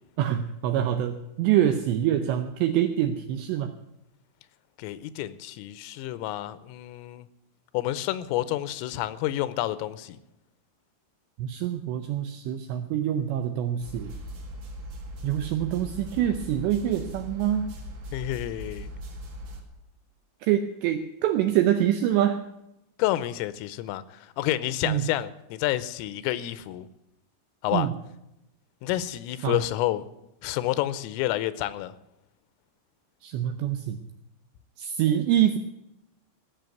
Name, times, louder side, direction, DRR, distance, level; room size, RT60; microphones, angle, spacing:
voice 1, 0.2-3.7 11.4-14.1 15.2-17.7 20.4-22.4 24.9-25.0 27.7-27.9 29.4-29.6 33.2-34.0 34.8-35.6, right 11 dB, 85° right, 2.5 m, -25 dB
voice 2, 4.8-7.3 7.7-10.2 18.1-18.9 23.0-26.9 27.6-27.9 28.8-30.1 30.4-31.9, left 14 dB, 85° left, 3.3 m, -29 dB
sound 1, 13.8-19.6, equal, 50° right, 2.3 m, -39 dB
16.0 x 6.8 x 9.1 m
omnidirectional pair, 5.8 m